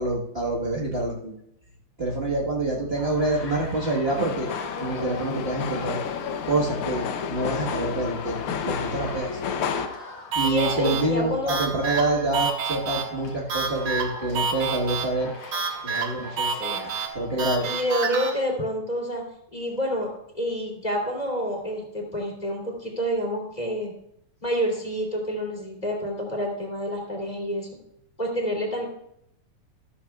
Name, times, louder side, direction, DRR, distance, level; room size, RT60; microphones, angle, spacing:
voice 1, 0.0-1.3 2.0-4.5 4.8-6.0 6.5-8.4 8.6-9.4 10.3-15.3 15.8-16.5 17.1-17.6, right 2 dB, 40° right, -6 dB, 0.8 m, -26 dB
sound 1, 3.0-17.1, left 2 dB, 65° left, 3.4 m, -42 dB
sound 2, 4.1-9.9, left 7 dB, 85° left, 1.2 m, -31 dB
sound 3, 10.3-18.3, right 5 dB, 65° right, 2.5 m, -29 dB
voice 2, 10.4-11.5 16.2-16.9 17.6-19.2 19.5-20.1 20.3-23.9 24.4-27.7 28.2-28.8, equal, 15° left, -1 dB, 2.8 m, -28 dB
13.5 x 13.5 x 2.4 m, 0.77 s
omnidirectional pair, 3.5 m